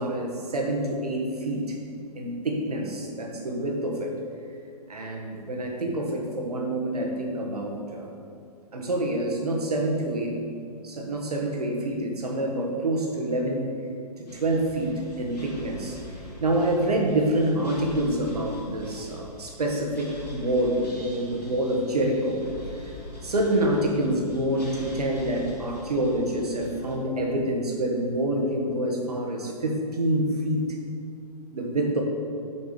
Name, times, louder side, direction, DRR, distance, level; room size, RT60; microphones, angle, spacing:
voice 1, 0.0-1.8 2.1-4.1 4.9-8.1 8.7-10.3 10.8-13.7 14.2-16.0 16.4-22.4 23.2-30.7 31.5-32.0, right 1 dB, 70° right, 0 dB, 1.4 m, -27 dB
sound 1, 14.3-27.0, left 1 dB, 75° left, 2.0 m, -43 dB
6.9 x 5.3 x 5.1 m, 2.4 s
figure-of-eight pair, 120°, 21 cm